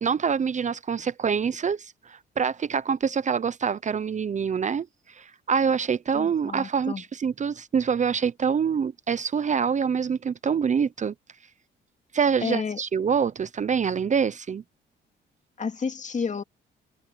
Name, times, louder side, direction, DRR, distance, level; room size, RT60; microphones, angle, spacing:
voice 1, 0.0-11.1 12.1-14.6, right 6 dB, 40° right, 0.7 m, -25 dB
voice 2, 6.1-7.0 12.4-12.8 15.6-16.4, left 5 dB, 40° left, 2.4 m, -30 dB
cardioid pair, 90°, 20 cm